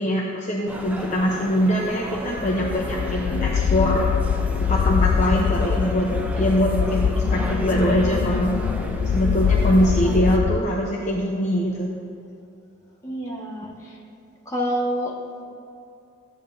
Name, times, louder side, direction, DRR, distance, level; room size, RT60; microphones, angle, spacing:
voice 1, 0.0-4.1 4.7-6.1 6.4-8.5 9.1-11.9, equal, 40° left, -2 dB, 0.9 m, -22 dB
sound 1, 0.7-10.4, right 1 dB, 10° right, 0.7 m, -35 dB
sound 2, 2.3-10.6, left 6 dB, 60° left, 0.3 m, -23 dB
voice 2, 13.0-14.0 14.5-15.4, equal, 15° left, -4 dB, 1.8 m, -28 dB
15.0 x 9.8 x 2.8 m, 2.6 s
head